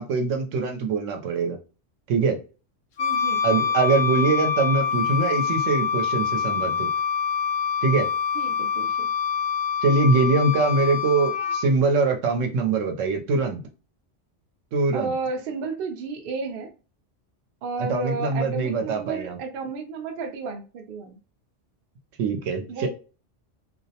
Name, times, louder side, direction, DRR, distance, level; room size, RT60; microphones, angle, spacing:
voice 1, 0.0-1.6 2.1-2.4 3.4-6.9 7.8-8.1 9.8-13.6 14.7-15.1 17.8-19.4 22.2-22.9, right 3 dB, 90° right, 1.0 m, -23 dB
Wind instrument woodwind instrument, 3.0-11.6, left 7 dB, 65° left, 0.9 m, -25 dB
voice 2, 3.0-3.4 8.3-9.1 14.9-16.7 17.6-21.2 22.7-22.9, right 4 dB, 60° right, 0.7 m, -32 dB
2.5 x 2.0 x 2.7 m
omnidirectional pair, 1.3 m